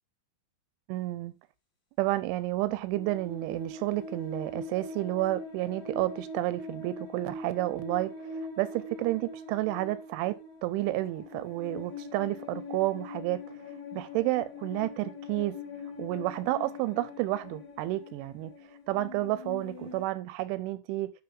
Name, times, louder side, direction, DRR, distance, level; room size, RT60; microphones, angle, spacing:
voice 1, 0.9-1.3 2.0-10.4 10.6-13.4 13.9-15.6 16.0-18.5 18.9-21.1, right 17 dB, 85° right, 2.8 m, -31 dB
sound 1, 2.9-20.0, left 2 dB, 30° left, 2.3 m, -43 dB
10.5 x 6.0 x 3.7 m
omnidirectional pair, 5.6 m